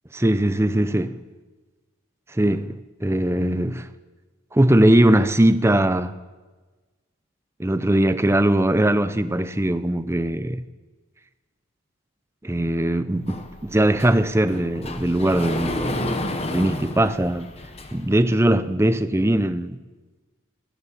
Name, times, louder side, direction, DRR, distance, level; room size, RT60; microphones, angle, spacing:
voice 1, 0.1-1.2 2.3-3.9 4.5-6.1 7.6-10.6 12.4-16.2 16.5-17.5 17.9-19.8, right 1 dB, 15° right, 0.5 m, -20 dB
Sliding door, 13.3-18.2, left 1 dB, 30° left, 1.1 m, -31 dB
16.5 x 12.5 x 6.6 m
head